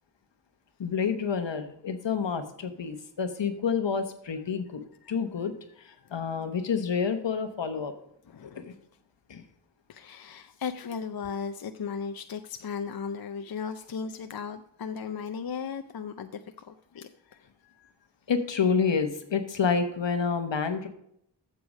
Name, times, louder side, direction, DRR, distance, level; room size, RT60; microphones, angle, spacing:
voice 1, 0.8-5.5 5.8-7.9 8.4-8.7 9.3-9.4 18.3-20.9, left 6 dB, 75° left, 8 dB, 1.1 m, -29 dB
voice 2, 8.3-8.7 9.9-17.9, left 6 dB, 55° left, 8 dB, 0.6 m, -37 dB
8.0 x 6.8 x 5.4 m, 0.71 s
cardioid pair, 45°, 44 cm